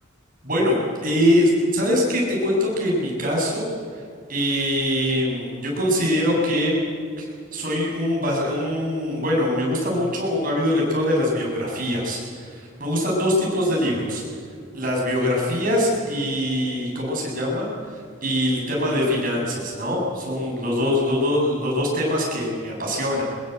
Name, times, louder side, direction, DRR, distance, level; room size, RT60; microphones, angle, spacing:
voice 1, 0.4-3.7 3.9-4.0 4.3-6.8 7.2-14.2 14.7-23.2, left 1 dB, 40° right, -2 dB, 7.6 m, -23 dB
24.0 x 20.5 x 8.1 m, 2.2 s
head